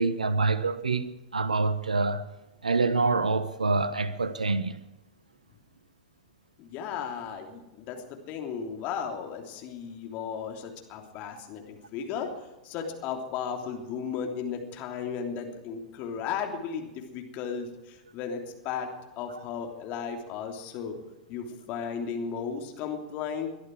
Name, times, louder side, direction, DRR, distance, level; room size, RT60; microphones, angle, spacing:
voice 1, 0.0-2.3 2.6-4.8, right 3 dB, 85° right, 1.1 m, -26 dB
voice 2, 6.6-12.3 12.6-18.9 19.2-21.0 21.3-23.5, left 7 dB, 40° left, 3.1 m, -35 dB
22.0 x 12.0 x 4.8 m
figure-of-eight pair, 100°, 4 cm